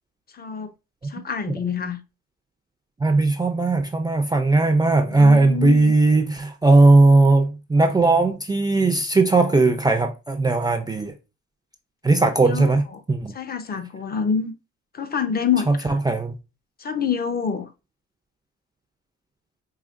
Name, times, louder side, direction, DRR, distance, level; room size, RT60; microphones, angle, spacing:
voice 1, 0.3-0.7 1.1-2.0 5.0-5.9 12.4-13.0 13.3-14.5 14.9-16.0 16.8-17.7, left 6 dB, 30° left, 0.6 m, -26 dB
voice 2, 3.0-11.1 12.0-13.3 15.7-16.3, right 3 dB, 15° right, 0.4 m, -18 dB
4.9 x 2.7 x 2.5 m
cardioid pair, 90°, 30 cm